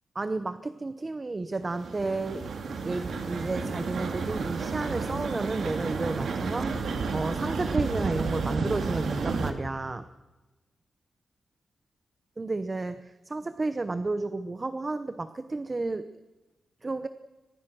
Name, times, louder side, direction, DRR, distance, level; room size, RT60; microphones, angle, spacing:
voice 1, 0.2-2.4 2.8-10.0 12.4-16.0 16.8-17.1, right 3 dB, 25° right, 12 dB, 0.8 m, -32 dB
sound 1, 1.6-9.5, right 4 dB, 65° right, 2.7 m, -31 dB
23.5 x 21.0 x 6.3 m, 1.1 s
wide cardioid pair, 160°, 0 cm